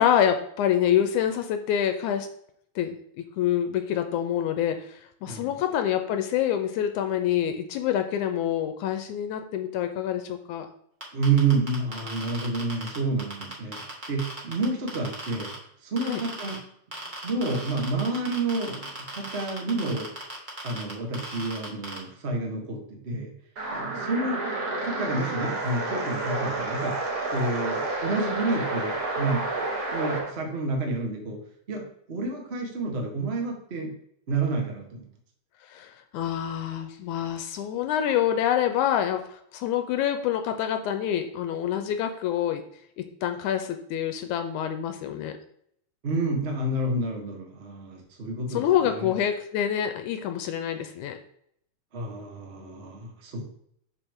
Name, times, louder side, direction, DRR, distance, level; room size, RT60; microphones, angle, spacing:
voice 1, 0.0-2.3 2.8-10.7 16.1-16.2 35.7-42.6 43.0-45.4 48.5-51.2, left 10 dB, 80° left, 7 dB, 1.9 m, -26 dB
sound 1, 11.0-15.6 16.0-16.6 16.9-22.0, right 1 dB, 25° right, 1.0 m, -37 dB
voice 2, 11.1-13.8 14.1-15.5 15.8-16.6 17.2-20.1 20.6-23.3 23.7-24.4 24.8-27.0 27.3-29.4 29.9-31.4 31.7-33.9 34.3-35.1 46.0-49.2 51.9-53.6, right 3 dB, 70° right, 1 dB, 0.6 m, -29 dB
sound 2, 23.6-30.3, right 2 dB, 50° right, 1.1 m, -30 dB
6.9 x 6.1 x 3.6 m, 0.68 s
omnidirectional pair, 3.8 m